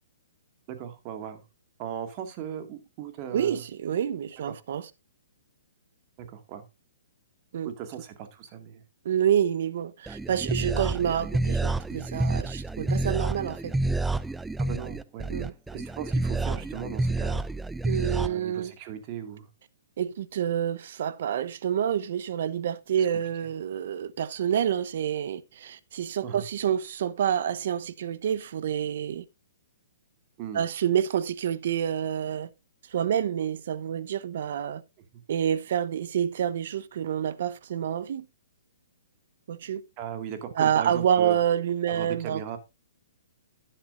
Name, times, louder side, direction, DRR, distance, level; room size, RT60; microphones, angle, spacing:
voice 1, 0.7-1.4 1.8-3.6 4.5-4.6 6.3-6.6 7.6-8.8 14.6-15.3 15.7-17.4 18.2-19.5 26.2-26.4 30.4-30.6 40.0-41.4 41.9-42.6, right 9 dB, 35° right, 2.1 m, -37 dB
voice 2, 3.3-4.9 7.5-7.7 9.0-13.7 15.3-15.5 17.8-18.7 20.0-29.2 30.5-32.5 32.9-34.8 35.3-38.2 39.5-39.8 40.6-42.4, right 9 dB, 60° right, 0.9 m, -28 dB
sound 1, 10.1-18.3, right 2 dB, 5° right, 0.4 m, -29 dB
11.5 x 10.5 x 2.6 m
hypercardioid pair, 135°, 0 cm